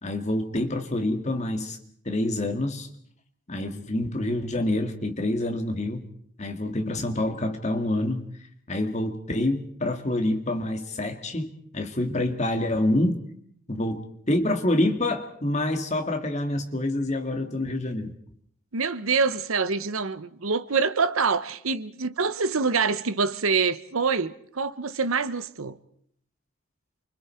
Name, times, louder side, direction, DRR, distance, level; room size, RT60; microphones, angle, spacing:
voice 1, 0.0-1.8 2.1-2.9 3.5-6.1 6.4-8.3 8.7-13.2 13.7-14.0 14.3-18.1, left 1 dB, 30° left, 2.0 m, -27 dB
voice 2, 18.7-25.8, right 5 dB, 70° right, 0.9 m, -25 dB
28.5 x 25.0 x 4.5 m
head